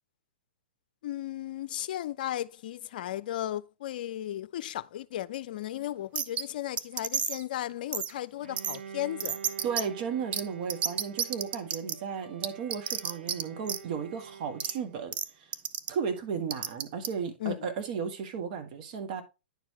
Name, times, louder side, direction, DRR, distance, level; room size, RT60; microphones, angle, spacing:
voice 1, 1.0-9.4 17.4-17.7, left 13 dB, 60° left, 0.5 m, -35 dB
sound 1, 6.2-6.4 6.8-7.4 7.9-8.1 8.6-8.8 9.2-9.8 10.3-10.4 10.7-11.9 12.4-13.4 13.7-13.8 14.6-14.7 15.1-15.3 15.5-15.9 16.5-17.1, right 9 dB, 25° right, 0.4 m, -30 dB
Bowed string instrument, 8.4-15.2, right 7 dB, 80° right, 0.7 m, -47 dB
voice 2, 9.6-15.5 15.9-19.2, right 6 dB, 50° right, 1.5 m, -34 dB
10.0 x 4.6 x 2.9 m
hypercardioid pair, 120°, 5 cm